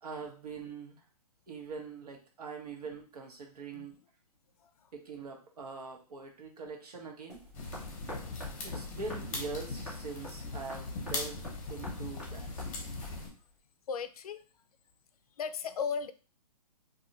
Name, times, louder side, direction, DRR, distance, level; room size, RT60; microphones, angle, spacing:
voice 1, 0.0-1.0 1.5-3.9 4.9-7.4 8.6-11.4 11.7-12.8, right 4 dB, 70° right, 2 dB, 1.2 m, -43 dB
sound 1, 7.3-13.6, equal, ahead, 0.3 m, -49 dB
sound 2, 7.5-13.3, left 3 dB, 25° left, 0.8 m, -39 dB
voice 2, 13.9-14.4 15.4-16.1, left 6 dB, 70° left, 12 dB, 0.4 m, -36 dB
2.7 x 2.4 x 4.0 m, 0.35 s
hypercardioid pair, 165°, 20 cm